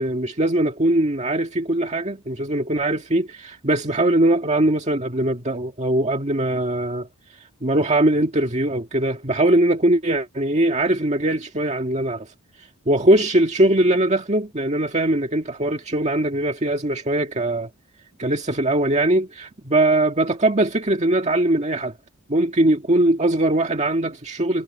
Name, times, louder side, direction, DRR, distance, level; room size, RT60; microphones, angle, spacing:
voice 1, 0.0-7.1 7.6-12.3 12.9-17.7 18.2-21.9 22.3-24.6, right 1 dB, 30° right, 1.9 m, -21 dB
head